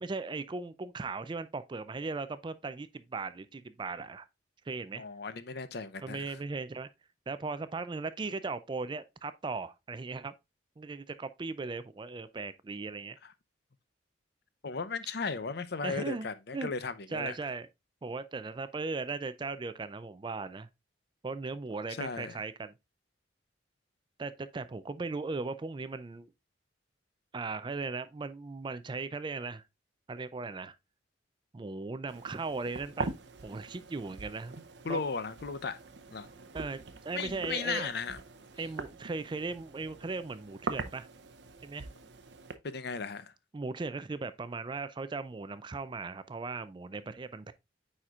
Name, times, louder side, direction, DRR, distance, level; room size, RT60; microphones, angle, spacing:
voice 1, 0.0-4.3 4.7-5.0 6.0-6.9 7.3-10.3 10.8-13.2 15.8-16.3 16.5-16.7 17.1-17.7 18.0-20.7 21.2-22.7 24.2-26.3 27.3-29.6 30.1-30.8 31.5-33.1 33.4-34.6 34.9-35.0 36.5-37.9 38.6-41.1 41.6-41.9 43.5-47.5, right 3 dB, 25° right, 0.4 m, -37 dB
voice 2, 4.9-6.4 13.2-13.3 14.6-17.4 21.9-22.4 34.8-35.8 36.1-36.3 37.1-38.2 42.6-43.3, left 4 dB, 55° left, 0.6 m, -36 dB
sound 1, 32.1-42.6, right 4 dB, 65° right, 0.7 m, -43 dB
9.1 x 4.3 x 2.4 m
head